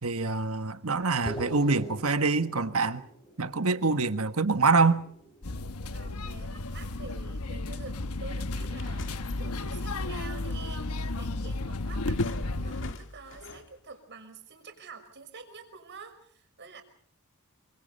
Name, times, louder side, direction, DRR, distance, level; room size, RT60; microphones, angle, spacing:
voice 1, 0.0-3.1 3.4-5.0, right 3 dB, 70° right, 1.5 m, -25 dB
sound 1, 1.3-6.0, equal, 25° left, 6.1 m, -44 dB
sound 2, 5.4-12.9, left 2 dB, 80° left, 1.2 m, -33 dB
voice 2, 5.9-16.8, right 4 dB, 55° right, 5.7 m, -48 dB
sound 3, 8.5-10.0 10.9-11.0 11.8-13.9, left 3 dB, 60° left, 1.9 m, -46 dB
28.0 x 25.5 x 5.5 m
head